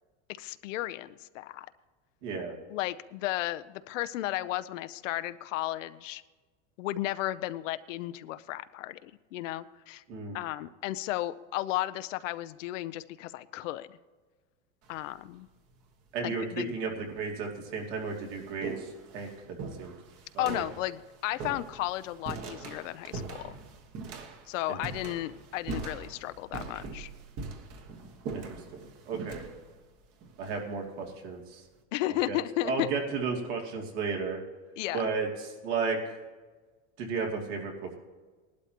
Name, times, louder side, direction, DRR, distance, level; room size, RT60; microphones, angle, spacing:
voice 1, 0.4-1.7 2.7-6.2 6.8-10.0 10.3-14.0 14.9-15.5 16.2-16.8 20.4-23.6 24.5-27.1 31.9-32.9 34.8-35.0, left 15 dB, 85° left, 13 dB, 0.7 m, -34 dB
voice 2, 2.2-2.5 10.1-10.4 16.1-18.9 19.1-19.9 20.3-20.6 24.7-24.8 28.3-29.4 30.4-31.6 32.3-32.4 32.6-34.4 34.9-35.3 35.6-36.1 37.0-38.0, right 4 dB, 65° right, 0 dB, 2.8 m, -33 dB
sound 1, 14.8-15.3 16.2-16.3 17.2-17.3 17.6-31.2, right 4 dB, 40° right, 1.4 m, -42 dB
19.5 x 12.0 x 2.9 m, 1.3 s
supercardioid pair, 145°, 37 cm